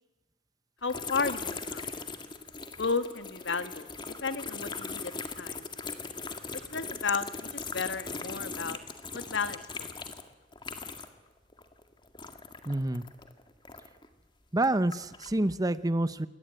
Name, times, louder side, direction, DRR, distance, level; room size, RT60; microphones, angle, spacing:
voice 1, 0.8-1.9 2.8-5.7 6.7-8.8 9.1-9.9, left 4 dB, 70° left, 10 dB, 1.6 m, -33 dB
sound 1, 0.9-11.3 11.5-14.1 14.6-15.4, left 4 dB, 25° left, 2.0 m, -39 dB
voice 2, 12.7-13.0 14.5-16.3, right 1 dB, 20° right, 14 dB, 0.8 m, -27 dB
28.5 x 21.5 x 9.1 m, 1.1 s
head